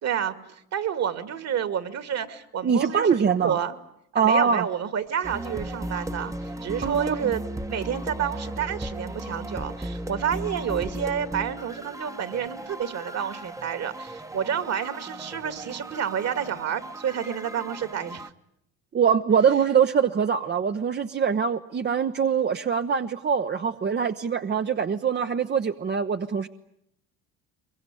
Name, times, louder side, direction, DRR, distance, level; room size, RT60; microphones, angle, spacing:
voice 1, 0.0-3.8 4.1-18.3, right 8 dB, 50° right, 11 dB, 2.4 m, -29 dB
voice 2, 2.6-3.6 4.1-4.7 6.8-7.1 18.9-26.5, right 7 dB, 30° right, 8 dB, 0.9 m, -23 dB
sound 1, 5.2-18.3, right 1 dB, 10° right, 1.1 m, -36 dB
23.0 x 23.0 x 9.9 m, 0.76 s
supercardioid pair, 80°, 33 cm